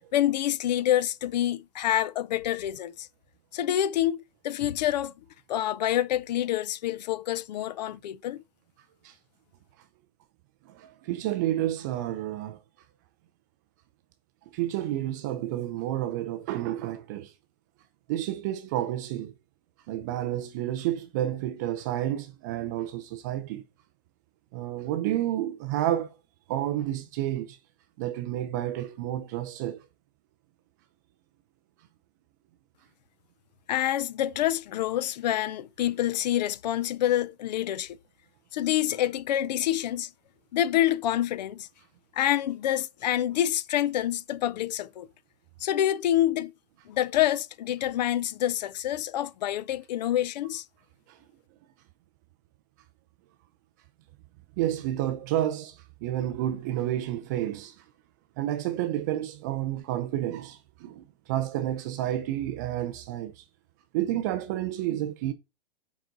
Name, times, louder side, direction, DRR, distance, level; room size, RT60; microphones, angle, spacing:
voice 1, 0.1-3.1 3.5-5.1 5.5-8.4 33.7-38.0 38.5-40.1 40.5-41.7 42.2-45.1 45.6-46.5 46.9-50.6, left 12 dB, 45° left, 0.4 m, -27 dB
voice 2, 10.7-12.6 14.5-17.3 18.1-19.3 19.9-23.6 24.5-26.1 26.5-27.6 28.0-29.8 51.1-51.2 54.6-57.8 58.4-63.4 63.9-65.3, right 13 dB, 20° right, 0.3 m, -30 dB
9.1 x 4.0 x 3.8 m
hypercardioid pair, 140°, 30 cm